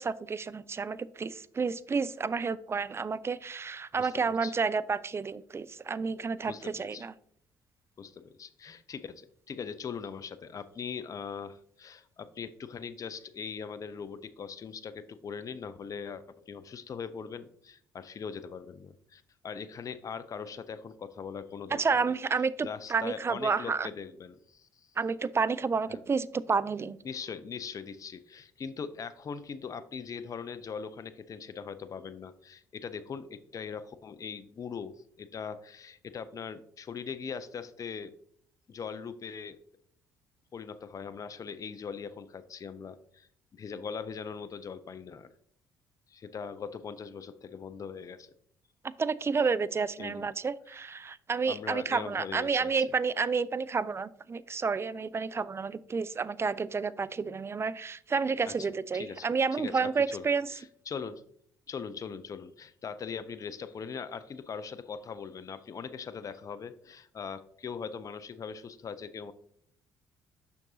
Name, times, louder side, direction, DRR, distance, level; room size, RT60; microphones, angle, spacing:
voice 1, 0.0-7.1 21.7-23.9 25.0-27.0 49.0-60.5, right 5 dB, 25° right, 16 dB, 0.4 m, -30 dB
voice 2, 3.9-4.5 6.5-7.1 8.0-24.9 25.9-26.0 27.0-38.2 38.7-39.6 40.5-45.3 46.1-48.3 50.0-50.3 51.4-52.7 58.5-58.7 58.9-61.2 61.7-69.3, left 6 dB, 35° left, 13 dB, 0.4 m, -41 dB
6.9 x 5.9 x 2.7 m, 0.65 s
hypercardioid pair, 50°, 10 cm